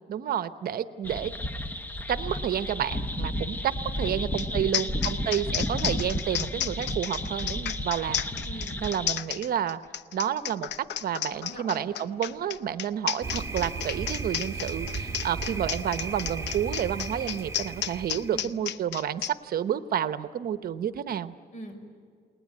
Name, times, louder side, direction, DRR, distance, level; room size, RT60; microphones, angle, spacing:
voice 1, 0.1-1.3 2.1-8.2 8.8-9.8 10.1-21.3, right 9 dB, 60° right, 12 dB, 0.9 m, -30 dB
sound 1, 1.0-9.2, left 1 dB, 10° left, 0.9 m, -32 dB
voice 2, 3.9-5.1 8.4-8.8 11.3-12.6 18.2-18.6 21.5-21.8, right 1 dB, 45° left, 6 dB, 5.4 m, -45 dB
sound 2, 4.4-4.5 4.7-19.3, left 11 dB, 85° left, 0.8 m, -32 dB
Thunder, 13.2-18.5, right 4 dB, 15° right, 1.6 m, -35 dB
29.5 x 20.0 x 9.6 m, 2.1 s
cardioid pair, 150°, 18 cm